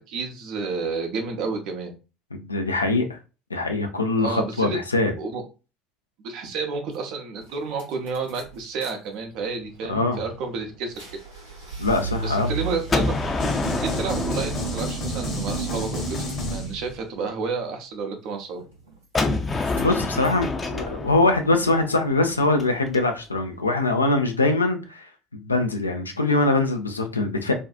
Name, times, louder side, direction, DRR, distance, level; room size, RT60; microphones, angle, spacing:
voice 1, 0.1-1.9 4.2-4.8 5.2-5.4 6.2-11.0 12.2-13.2 13.8-16.2 16.5-18.6, right 4 dB, 55° right, 0.6 m, -30 dB
voice 2, 2.3-3.2 3.5-5.1 9.9-10.2 11.8-12.5 19.7-27.5, left 2 dB, 85° left, 0.4 m, -23 dB
sound 1, 6.9-7.0 7.4-8.9 9.2-17.0 18.5-19.2 19.4-20.4, right 5 dB, 80° right, 0.9 m, -36 dB
Gunshot gunfire, 12.9-15.7 19.1-23.0, left 3 dB, 25° left, 0.5 m, -28 dB
sound 2, 13.4-17.1, left 1 dB, 45° left, 0.9 m, -30 dB
2.6 x 2.3 x 2.4 m
figure-of-eight pair, 60°, 0 cm